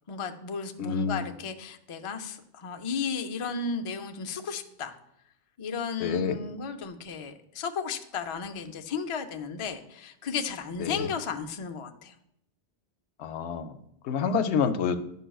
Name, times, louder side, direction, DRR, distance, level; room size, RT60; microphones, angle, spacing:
voice 1, 0.1-4.9 5.6-12.1, left 5 dB, 50° left, 6 dB, 0.3 m, -34 dB
voice 2, 0.8-1.2 6.0-6.4 10.8-11.1 13.2-13.8 14.0-15.0, left 6 dB, 75° left, 9 dB, 0.8 m, -28 dB
11.0 x 5.5 x 2.3 m, 0.78 s
omnidirectional pair, 1.2 m